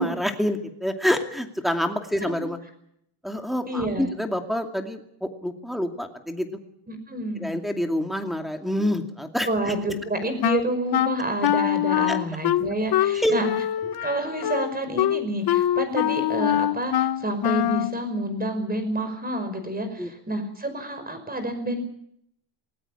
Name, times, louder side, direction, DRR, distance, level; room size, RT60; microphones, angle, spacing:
voice 1, 0.0-2.6 3.2-6.5 7.4-9.7 12.1-12.2 13.1-13.4 20.0-20.1, equal, ahead, 4 dB, 2.5 m, -27 dB
voice 2, 3.7-4.1 6.9-7.5 9.4-13.5 13.8-21.8, right 1 dB, 20° right, 8 dB, 5.5 m, -29 dB
Wind instrument woodwind instrument, 10.4-18.0, left 12 dB, 50° left, 0.8 m, -24 dB
19.5 x 19.0 x 8.8 m, 0.73 s
cardioid pair, 140°, 49 cm